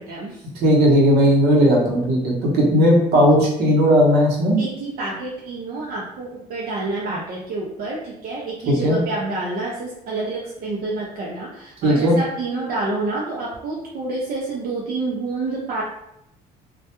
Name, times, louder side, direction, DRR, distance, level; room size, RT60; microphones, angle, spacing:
voice 1, 0.0-0.5 3.3-3.4 4.6-15.8, right 2 dB, 60° right, -4 dB, 0.5 m, -28 dB
voice 2, 0.6-4.6 8.7-9.0 11.8-12.1, equal, 75° right, -2 dB, 0.8 m, -16 dB
2.2 x 2.1 x 2.9 m, 0.81 s
cardioid pair, 110°, 17 cm